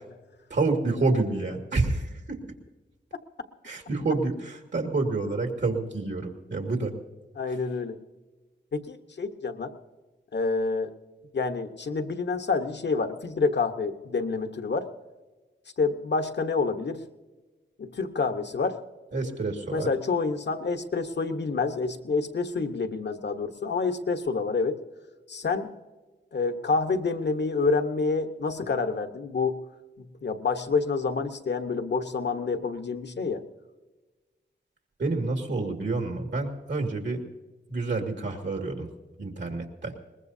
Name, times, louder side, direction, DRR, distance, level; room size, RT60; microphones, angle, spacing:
voice 1, 0.5-2.4 3.6-7.0 19.1-19.9 35.0-37.2 37.7-38.9 39.2-40.0, right 3 dB, 75° right, 3 dB, 2.1 m, -28 dB
voice 2, 7.4-8.0 8.7-9.7 10.3-10.9 11.3-14.9 15.8-17.0 17.8-18.8 19.7-24.8 25.3-25.7 26.3-29.6 30.0-33.4, left 4 dB, 70° left, 8 dB, 1.1 m, -28 dB
22.0 x 20.5 x 2.7 m, 1.2 s
wide cardioid pair, 75°, 19 cm